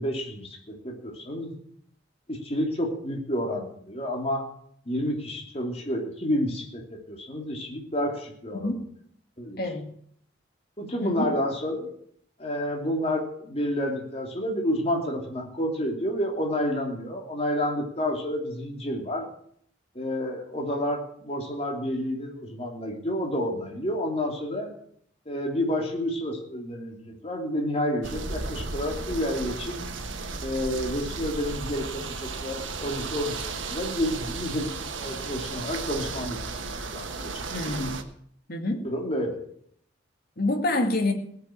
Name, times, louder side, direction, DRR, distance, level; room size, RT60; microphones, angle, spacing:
voice 1, 0.0-1.5 2.3-4.4 4.9-8.7 9.4-9.6 10.8-11.9 12.4-19.3 19.9-24.7 25.3-29.9 30.4-36.5 36.9-37.6 38.8-39.3, equal, 30° left, 1 dB, 2.9 m, -30 dB
sound 1, 28.0-38.0, right 4 dB, 85° right, 1.4 m, -34 dB
voice 2, 37.5-38.0 38.5-38.8 40.4-41.1, left 2 dB, 50° left, 4 dB, 2.1 m, -27 dB
17.0 x 6.9 x 8.5 m, 0.66 s
head